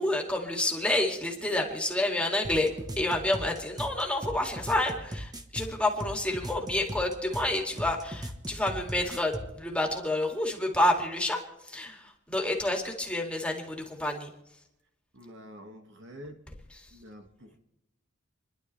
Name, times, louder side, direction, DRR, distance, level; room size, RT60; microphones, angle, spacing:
voice 1, 0.0-14.3 16.8-16.9, left 1 dB, 5° left, 1 dB, 2.3 m, -29 dB
sound 1, 2.4-9.5, equal, 20° right, 1.2 m, -38 dB
voice 2, 15.1-16.4 16.9-17.6, equal, 55° right, 4 dB, 1.9 m, -47 dB
28.5 x 11.5 x 3.3 m, 0.84 s
head